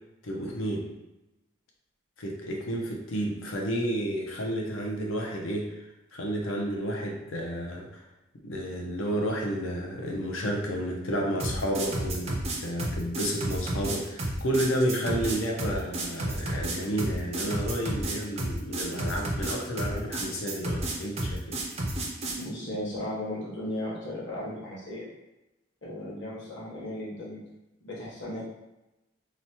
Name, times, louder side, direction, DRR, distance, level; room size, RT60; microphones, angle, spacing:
voice 1, 0.2-0.9 2.2-8.0 8.4-21.6, equal, 90° left, 0 dB, 0.6 m, -31 dB
sound 1, 11.4-22.4, right 1 dB, 30° right, 0.4 m, -31 dB
voice 2, 22.4-25.1 25.8-27.4 27.8-28.5, left 1 dB, 65° left, -6 dB, 1.0 m, -36 dB
2.9 x 2.1 x 2.8 m, 0.97 s
head